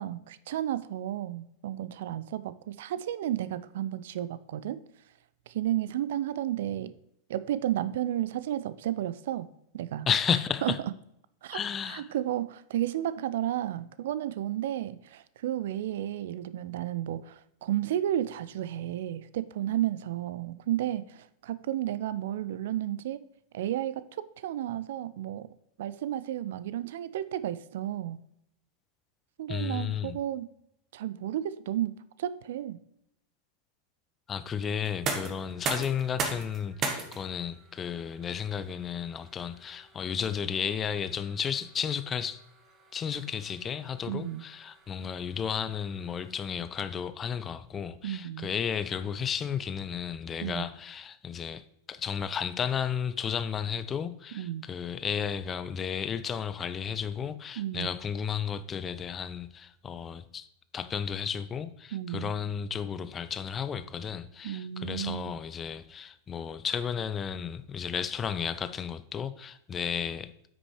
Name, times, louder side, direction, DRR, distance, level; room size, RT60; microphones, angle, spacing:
voice 1, 0.0-4.8 5.5-6.9 7.3-9.5 9.7-10.1 10.6-10.7 11.4-11.6 11.9-23.2 23.5-25.5 25.8-28.2 29.4-30.5 30.9-31.9 32.2-32.8 44.1-44.4 48.0-48.5 50.4-50.7 54.4-54.7 57.6-57.9 61.9-62.3 64.4-65.4, right 12 dB, 55° right, 0.4 m, -32 dB
voice 2, 10.1-10.8 11.5-12.1 29.5-30.1 34.3-42.4 42.9-60.5 60.7-70.3, left 7 dB, 25° left, 0.5 m, -33 dB
sound 1, 34.8-46.6, right 4 dB, 30° right, 1.3 m, -40 dB
9.3 x 6.2 x 3.2 m
figure-of-eight pair, 90°, 0 cm